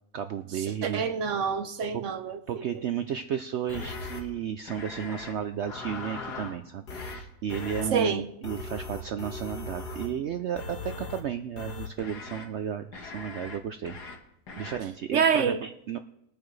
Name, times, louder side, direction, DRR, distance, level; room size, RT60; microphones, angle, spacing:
voice 1, 0.1-1.0 1.9-2.0 2.5-14.0 14.6-16.0, right 9 dB, 75° right, 0.6 m, -33 dB
voice 2, 0.8-2.4 7.9-8.3 15.1-15.6, right 6 dB, 55° right, 1.1 m, -26 dB
sound 1, 3.7-4.2 4.7-5.3 5.6-6.5 6.9-7.2 7.5-7.9 8.4-10.1 10.5-11.2 11.5-12.4 12.9-13.6 13.9-14.1 14.5-14.8, left 3 dB, 80° left, 2.1 m, -39 dB
21.5 x 8.7 x 3.2 m
omnidirectional pair, 1.7 m